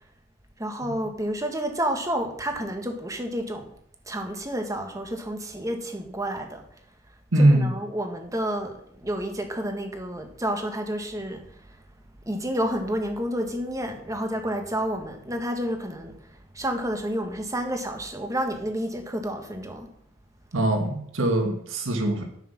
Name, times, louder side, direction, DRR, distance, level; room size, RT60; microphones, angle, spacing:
voice 1, 0.6-3.7 4.1-6.6 7.4-11.8 12.2-19.9, equal, 15° right, 5 dB, 1.6 m, -30 dB
voice 2, 7.3-7.7 20.5-22.2, right 1 dB, 85° right, 4 dB, 1.8 m, -22 dB
10.0 x 6.9 x 7.4 m, 0.68 s
head